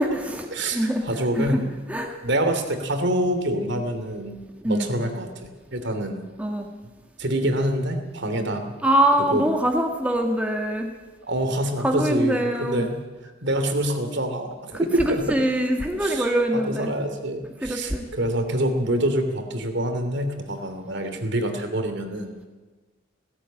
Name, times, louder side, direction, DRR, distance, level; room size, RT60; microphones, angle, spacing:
voice 1, 0.0-1.0 1.4-1.6 1.9-2.2 4.6-4.9 6.4-6.7 8.8-10.9 11.8-12.9 14.7-16.9 17.6-18.1, right 1 dB, 5° right, 2 dB, 1.6 m, -23 dB
voice 2, 0.5-1.7 2.2-4.4 4.6-6.2 7.2-8.7 9.2-9.4 11.2-13.0 13.4-15.4 16.0-22.3, right 1 dB, 60° right, 7 dB, 2.9 m, -26 dB
17.5 x 16.5 x 8.9 m, 1.3 s
head